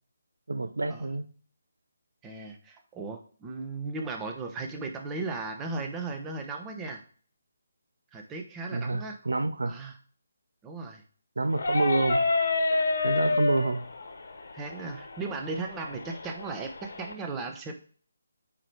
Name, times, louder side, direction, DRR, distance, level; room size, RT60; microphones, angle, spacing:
voice 1, 0.5-1.3 8.7-9.8 11.4-12.3 13.0-13.9, right 2 dB, 75° right, 0.6 m, -28 dB
voice 2, 2.2-7.0 8.1-9.2 9.7-10.0 10.6-11.0 13.2-13.4 14.5-17.7, right 3 dB, 15° right, 1.0 m, -36 dB
sound 1, 11.5-17.1, left 3 dB, 65° left, 1.5 m, -29 dB
9.1 x 3.2 x 4.7 m
figure-of-eight pair, 150°, 0 cm